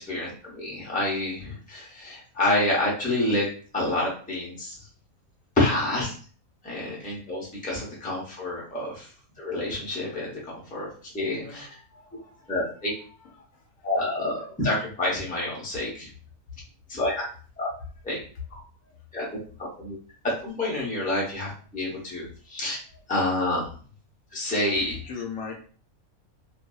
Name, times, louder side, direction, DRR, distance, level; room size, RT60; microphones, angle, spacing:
voice 1, 0.1-3.5 3.7-4.8 5.6-6.1 6.6-9.0 9.4-10.9 11.1-11.7 12.5-12.9 13.8-16.1 16.9-17.2 17.6-17.7 18.0-18.2 18.5-18.6 19.1-19.3 19.6-20.0 20.4-22.8 23.1-23.7 24.3-24.9, left 1 dB, 10° left, -5 dB, 0.6 m, -28 dB
voice 2, 11.4-12.2 25.0-25.6, left 6 dB, 70° left, 0 dB, 0.9 m, -38 dB
2.6 x 2.4 x 2.3 m, 0.41 s
omnidirectional pair, 1.5 m